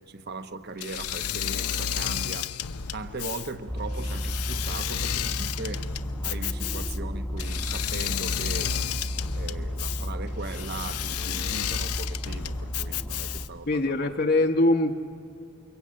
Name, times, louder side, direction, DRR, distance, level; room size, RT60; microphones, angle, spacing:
voice 1, 0.1-2.5 2.9-5.9 6.2-8.7 9.3-14.1, right 3 dB, 45° right, 11 dB, 1.0 m, -39 dB
Engine / Mechanisms, 0.8-13.7, left 9 dB, 90° left, 0.7 m, -32 dB
sound 1, 3.7-13.5, equal, 5° left, 1.0 m, -33 dB
voice 2, 13.7-14.9, left 2 dB, 45° left, 3 dB, 1.0 m, -22 dB
29.5 x 23.0 x 8.8 m, 2.4 s
head